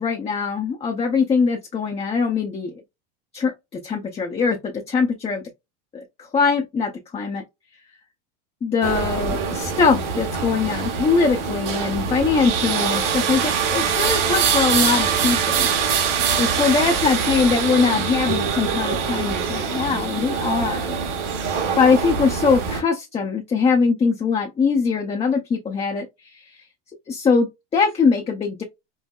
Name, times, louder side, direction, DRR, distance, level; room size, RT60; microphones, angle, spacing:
voice 1, 0.0-2.7 3.3-5.4 5.9-7.4 8.6-16.0 16.3-20.9 21.8-26.4 27.1-28.6, left 5 dB, 15° left, 0.6 m, -22 dB
sound 1, 8.8-22.8, right 6 dB, 75° right, 1.6 m, -23 dB
5.4 x 2.0 x 2.3 m
supercardioid pair, 130°, 36 cm